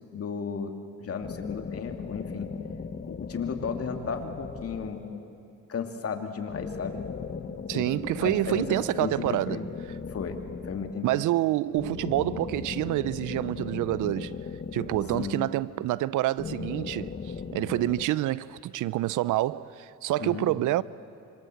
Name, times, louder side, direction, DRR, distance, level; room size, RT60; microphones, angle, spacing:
voice 1, 0.1-0.7 1.0-2.5 3.1-5.0 5.7-7.0 7.7-7.9 8.2-9.7 10.1-11.2 15.1-15.4 20.2-20.5, left 6 dB, 50° left, 2.7 m, -34 dB
sound 1, 1.2-5.4 6.5-11.1 11.8-15.8 16.4-18.1, left 5 dB, 35° left, 1.2 m, -38 dB
voice 2, 7.7-9.7 11.0-14.4 14.7-17.1 17.5-20.8, right 15 dB, 85° right, 0.7 m, -27 dB
26.5 x 26.0 x 7.9 m
cardioid pair, 90°, 30 cm